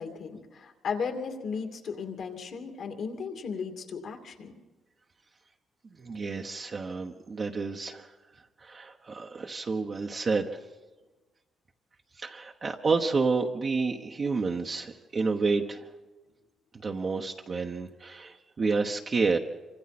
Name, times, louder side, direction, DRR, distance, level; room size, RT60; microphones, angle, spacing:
voice 1, 0.0-4.5, left 5 dB, 65° left, 4 dB, 2.5 m, -35 dB
voice 2, 5.8-10.6 12.1-15.9 16.7-19.4, right 4 dB, 40° right, 1 dB, 1.2 m, -30 dB
26.0 x 25.0 x 4.3 m, 1.2 s
cardioid pair, 90°, 0 cm